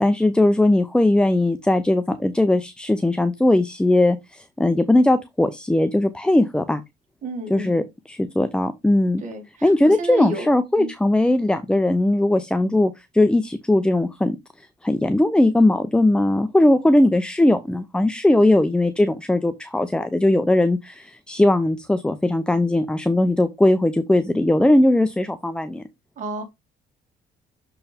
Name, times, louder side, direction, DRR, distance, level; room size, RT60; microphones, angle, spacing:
voice 1, 0.0-6.8 7.5-9.2 9.6-25.8, left 1 dB, 5° left, 0.5 m, -19 dB
voice 2, 7.2-7.9 9.2-10.5 10.8-10.9 26.2-26.4, right 3 dB, 45° right, 2.6 m, -31 dB
6.6 x 4.6 x 3.4 m
cardioid pair, 110°, 17 cm